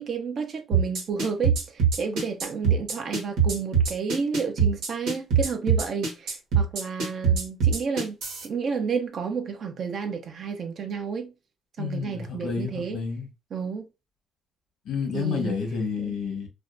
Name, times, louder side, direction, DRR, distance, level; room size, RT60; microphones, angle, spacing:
voice 1, 0.0-8.2 8.4-11.3 11.8-13.0 13.5-13.8 15.1-15.6 16.0-16.1, right 5 dB, 55° right, 0.6 m, -31 dB
sound 1, 0.7-8.4, right 6 dB, 90° right, 1.0 m, -23 dB
voice 2, 11.8-13.3 14.8-16.5, left 5 dB, 85° left, 1.1 m, -30 dB
2.5 x 2.1 x 2.5 m
cardioid pair, 90°, 0 cm